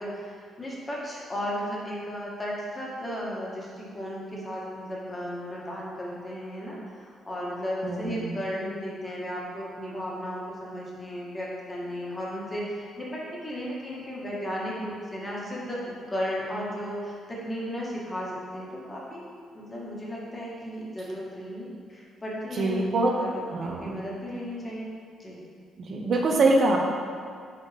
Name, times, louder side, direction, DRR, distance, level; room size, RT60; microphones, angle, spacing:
voice 1, 0.0-19.3 19.5-24.9 25.2-25.4, equal, 20° left, -5 dB, 1.9 m, -35 dB
voice 2, 7.8-8.4 22.6-23.1 23.5-24.0 25.8-26.8, right 2 dB, 55° right, 1 dB, 0.8 m, -24 dB
10.5 x 4.2 x 3.6 m, 2.1 s
cardioid pair, 90°, 0 cm